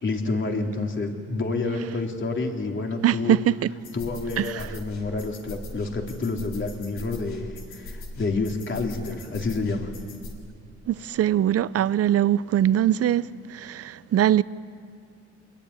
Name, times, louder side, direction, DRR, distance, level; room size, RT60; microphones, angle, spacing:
voice 1, 0.0-3.4 3.9-9.9, left 3 dB, 40° left, 3.5 m, -29 dB
voice 2, 3.0-3.5 4.4-4.6 10.9-13.3 13.5-14.4, right 11 dB, 50° right, 0.7 m, -22 dB
sound 1, 3.8-10.3, left 2 dB, 75° left, 5.8 m, -40 dB
26.0 x 21.5 x 9.9 m
cardioid pair, 90°, 30 cm